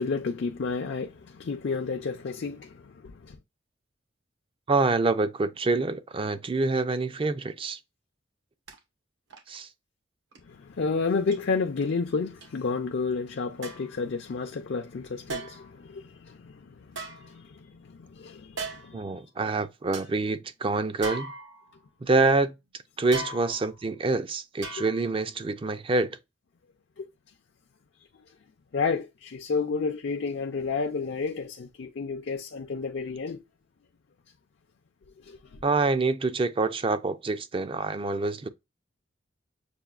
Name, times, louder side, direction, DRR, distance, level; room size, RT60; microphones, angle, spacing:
voice 1, 0.0-3.4 10.5-19.2 27.0-27.1 28.7-33.4 35.2-35.6, left 4 dB, 65° left, 0.5 m, -31 dB
voice 2, 4.7-7.8 9.5-9.7 18.9-21.3 22.0-22.6 23.0-26.2 35.6-38.5, right 3 dB, 30° right, 0.4 m, -26 dB
sound 1, 8.7-8.8 9.3-9.6 10.3-10.4 11.3-11.4 12.4-12.5 13.6-14.0 15.3-15.8 16.9-17.8 18.5-19.1 19.5-19.6 19.9-20.1 21.0-21.9 23.1-23.8 24.6-25.2 25.5-25.6, right 3 dB, 75° right, 1.2 m, -38 dB
6.9 x 2.3 x 2.4 m
head